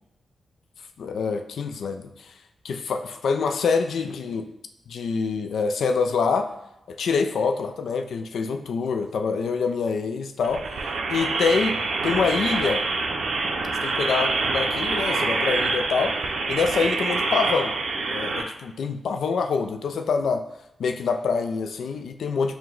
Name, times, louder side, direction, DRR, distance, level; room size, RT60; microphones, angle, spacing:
voice 1, 1.0-2.3 2.6-4.5 4.9-6.5 6.9-11.8 12.0-12.8 13.8-16.1 16.5-17.7 18.1-20.4 20.8-22.6, left 5 dB, 85° left, 6 dB, 0.3 m, -25 dB
sound 1, 10.4-18.4, right 3 dB, 90° right, 0.5 m, -26 dB
4.7 x 2.1 x 3.7 m, 0.88 s
wide cardioid pair, 120°, 0 cm